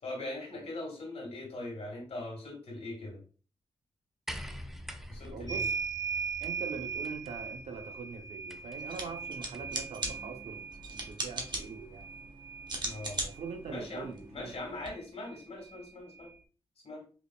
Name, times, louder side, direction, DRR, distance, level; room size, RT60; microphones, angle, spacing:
voice 1, 0.0-3.2 5.1-5.7 12.8-13.2 13.7-16.3 16.8-17.0, left 2 dB, 70° left, -1 dB, 2.0 m, -41 dB
sound 1, 4.3-9.9 11.0-11.1, equal, 5° right, 0.4 m, -46 dB
voice 2, 5.3-5.8 6.4-12.1 13.2-14.6, right 5 dB, 90° right, 5 dB, 0.7 m, -43 dB
sound 2, 5.5-13.6 14.9-15.0 15.2-16.3, right 6 dB, 35° left, 1.0 m, -39 dB
sound 3, 8.8-14.9, right 2 dB, 45° right, 1.1 m, -40 dB
5.1 x 2.9 x 2.3 m, 0.38 s
cardioid pair, 65°, 11 cm